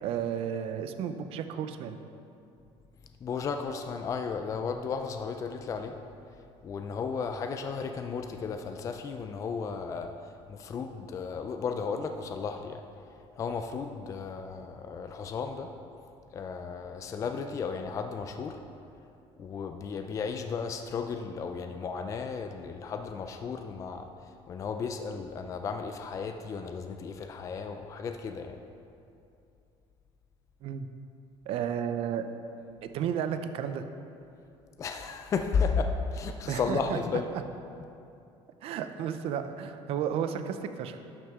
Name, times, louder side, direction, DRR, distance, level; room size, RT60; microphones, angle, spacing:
voice 1, 0.0-2.0 30.6-30.9 31.5-32.3 32.8-33.8 36.5-37.0 37.3-37.4 38.6-41.0, right 8 dB, 60° right, 9 dB, 0.5 m, -32 dB
voice 2, 3.2-6.0 6.6-12.8 13.4-15.7 16.3-18.6 19.4-28.6 34.8-37.3, left 5 dB, 30° left, 5 dB, 0.4 m, -34 dB
11.5 x 6.1 x 3.6 m, 2.6 s
cardioid pair, 160°, 11 cm